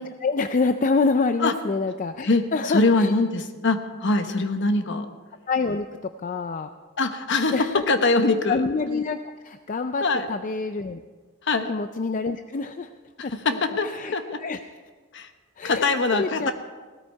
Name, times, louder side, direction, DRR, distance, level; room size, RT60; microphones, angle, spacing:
voice 1, 0.0-3.1 5.5-5.9 6.2-6.7 7.5-7.8 8.5-9.2 9.4-11.0 11.7-12.9 13.2-14.6 15.6-15.9 16.1-16.5, left 4 dB, 40° left, 9 dB, 0.4 m, -26 dB
voice 2, 2.2-5.1 7.0-7.5 7.9-8.6 10.0-10.3 11.4-11.7 13.4-14.4 15.1-15.3 15.6-16.5, left 3 dB, 55° left, 7 dB, 1.1 m, -23 dB
17.0 x 13.5 x 4.7 m, 1.4 s
head